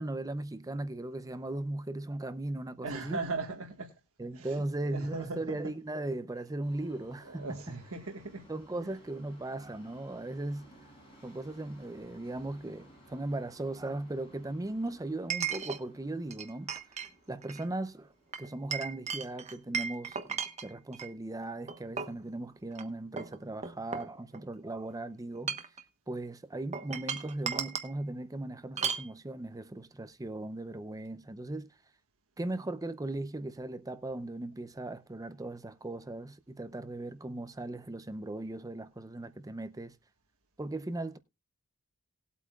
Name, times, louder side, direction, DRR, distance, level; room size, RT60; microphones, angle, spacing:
voice 1, 0.0-3.2 4.2-7.8 8.5-10.7 11.2-17.0 17.3-18.1 18.4-25.6 26.1-31.7 32.4-40.0 40.6-41.2, right 2 dB, 15° right, 0.6 m, -38 dB
voice 2, 2.8-3.9 4.3-5.6 7.2-8.5 8.8-8.9, right 3 dB, 70° right, 1.5 m, -39 dB
Subway metro underground, 6.6-20.7 21.0-21.1 22.0-22.1 22.4-22.5 23.1-23.2, right 1 dB, 25° left, 7.3 m, -59 dB
Chink clink, 11.8-11.9 15.3-15.8 16.3-17.1 17.4-17.7 18.3-21.1 21.7-22.2 22.7-22.8 23.2-24.6 25.3-25.8 26.7-27.9 28.8-29.1, right 6 dB, 30° right, 1.0 m, -36 dB
19.0 x 8.3 x 2.3 m
head